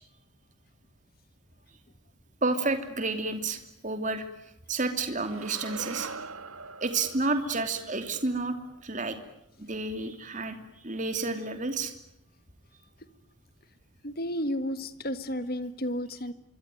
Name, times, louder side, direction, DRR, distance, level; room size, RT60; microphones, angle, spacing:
voice 1, 2.4-4.2 4.7-6.1 6.8-8.5 8.8-9.2 9.6-10.6 10.8-11.9, right 3 dB, 35° right, 7 dB, 2.9 m, -30 dB
sound 1, 5.2-9.4, right 4 dB, 85° right, 1.7 m, -43 dB
voice 2, 14.0-16.3, equal, 45° left, 12 dB, 1.6 m, -32 dB
26.0 x 24.0 x 9.3 m, 0.80 s
head